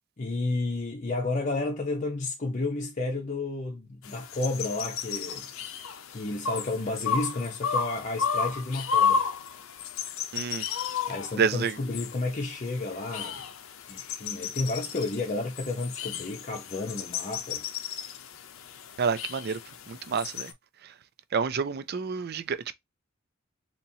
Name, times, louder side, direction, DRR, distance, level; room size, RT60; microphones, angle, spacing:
voice 1, 0.2-5.5 6.1-9.2 11.1-13.4 13.9-17.6, left 2 dB, 40° left, 0.7 m, -31 dB
sound 1, 4.0-20.5, left 6 dB, 85° left, 0.5 m, -33 dB
voice 2, 10.3-10.7 11.3-11.7 19.0-19.6 19.9-20.5 21.3-22.7, right 6 dB, 50° right, 0.5 m, -28 dB
4.1 x 2.9 x 2.7 m
head